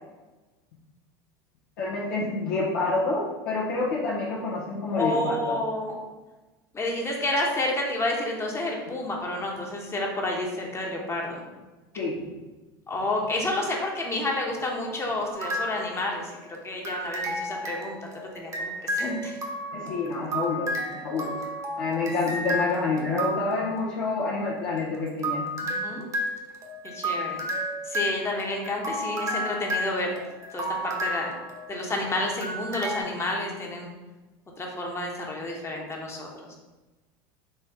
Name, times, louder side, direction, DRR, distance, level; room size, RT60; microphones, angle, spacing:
voice 1, 1.8-5.6 12.0-12.2 19.7-21.4 21.8-25.5, left 3 dB, 75° left, -6 dB, 0.9 m, -28 dB
voice 2, 4.9-6.0 6.7-11.4 12.9-16.3 16.6-18.1 18.3-19.4 25.6-26.1 26.8-27.4 27.8-30.1 30.5-30.6 31.0-31.3 31.7-33.9 34.6-36.6, left 1 dB, 20° left, 0 dB, 1.1 m, -30 dB
sound 1, 15.3-16.4 16.8-23.8 24.8-32.0 32.4-33.0, equal, 25° right, 1.0 m, -32 dB
4.3 x 3.0 x 3.6 m, 1.2 s
hypercardioid pair, 90°, 12 cm